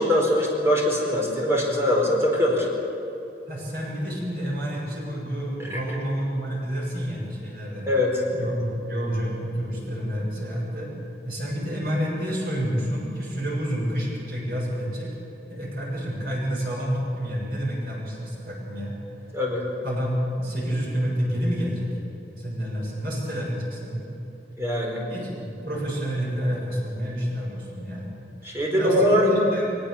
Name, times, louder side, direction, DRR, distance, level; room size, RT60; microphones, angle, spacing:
voice 1, 0.0-2.7 5.6-5.8 7.9-8.2 19.3-19.6 24.6-25.1 28.4-29.2, left 1 dB, 15° right, -2 dB, 4.5 m, -22 dB
voice 2, 3.5-7.9 8.3-10.9 11.2-15.1 15.5-19.0 19.8-21.9 22.4-24.1 25.1-28.1 28.4-29.8, equal, 55° right, -3 dB, 7.1 m, -29 dB
21.5 x 20.0 x 7.2 m, 2.9 s
head